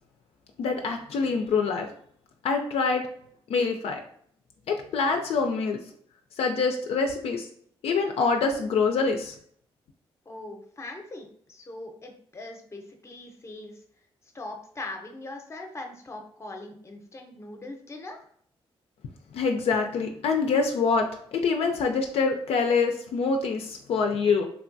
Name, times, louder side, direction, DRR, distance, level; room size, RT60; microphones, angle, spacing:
voice 1, 0.6-1.9 2.4-3.0 3.5-4.0 4.7-5.8 6.4-7.5 7.8-9.3 19.3-24.5, left 4 dB, 70° left, 4 dB, 0.4 m, -25 dB
voice 2, 10.3-13.8 14.3-18.2, left 2 dB, 25° left, 4 dB, 0.6 m, -41 dB
3.2 x 2.2 x 2.5 m, 0.63 s
cardioid pair, 70°, 10 cm